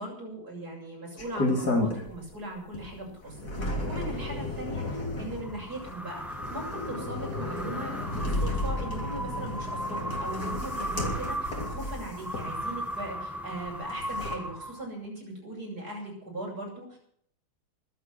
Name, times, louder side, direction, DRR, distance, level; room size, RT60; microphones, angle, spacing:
voice 1, 0.0-17.0, right 1 dB, 75° right, -1 dB, 8.2 m, -39 dB
sound 1, 1.2-2.3 2.7-13.0 13.7-14.4, left 2 dB, 75° left, 3.9 m, -33 dB
sound 2, 5.3-15.0, equal, ahead, 1.5 m, -37 dB
24.5 x 8.5 x 6.2 m, 0.63 s
omnidirectional pair, 1.7 m